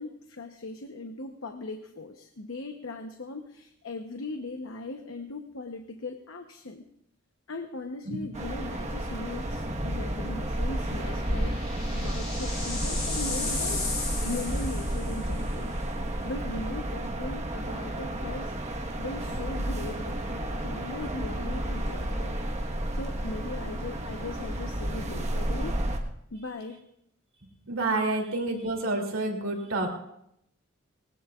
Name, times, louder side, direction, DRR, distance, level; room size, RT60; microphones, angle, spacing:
voice 1, 0.0-6.9 7.5-11.6 11.9-15.8 16.2-18.5 19.0-22.4 22.9-25.8 26.3-26.8 28.1-28.2, left 2 dB, 70° left, 5 dB, 0.9 m, -39 dB
sound 1, 8.3-26.0, right 1 dB, 35° right, 1.3 m, -31 dB
sound 2, 10.7-15.4, left 3 dB, 35° left, 7.1 m, -35 dB
voice 2, 27.6-29.9, right 2 dB, 75° right, 2 dB, 2.7 m, -28 dB
19.5 x 19.5 x 2.4 m, 0.75 s
head